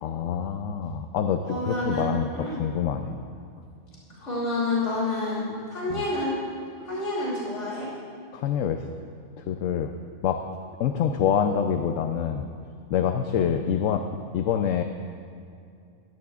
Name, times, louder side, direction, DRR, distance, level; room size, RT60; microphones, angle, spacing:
voice 1, 0.0-2.3 2.6-3.2 5.9-6.0 8.3-8.9 9.4-9.9 10.2-10.4 10.8-12.5 12.9-14.0 14.3-14.8, left 8 dB, 85° left, 6 dB, 1.0 m, -26 dB
voice 2, 1.4-2.6 4.1-6.3 6.8-7.9, left 2 dB, 70° left, -7 dB, 3.2 m, -29 dB
21.0 x 16.0 x 2.4 m, 2.4 s
omnidirectional pair, 1.3 m